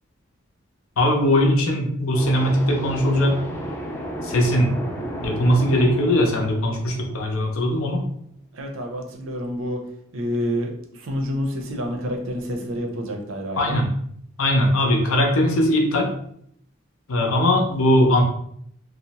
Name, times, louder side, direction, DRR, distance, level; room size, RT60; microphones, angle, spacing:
voice 1, 1.0-3.4 4.2-4.7 5.2-8.0 13.6-13.9 14.4-16.1 17.1-18.2, left 1 dB, 80° left, 1 dB, 0.6 m, -20 dB
sound 1, 2.1-7.8, equal, 10° left, 0.3 m, -33 dB
voice 2, 8.5-9.8 10.1-13.8, equal, 70° right, 2 dB, 0.5 m, -28 dB
2.7 x 2.0 x 2.8 m, 0.67 s
head